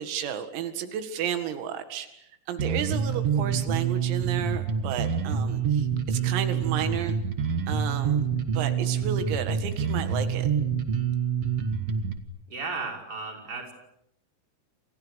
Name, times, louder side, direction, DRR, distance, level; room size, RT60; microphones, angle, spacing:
voice 1, 0.0-2.1 2.5-7.2 7.7-8.2 8.5-10.5, right 9 dB, 85° right, 8 dB, 4.7 m, -32 dB
Bass guitar, 2.6-12.2, right 7 dB, 70° right, 1.4 m, -27 dB
voice 2, 12.5-13.7, right 4 dB, 20° right, 1 dB, 5.6 m, -34 dB
30.0 x 28.5 x 6.5 m, 0.79 s
omnidirectional pair, 6.0 m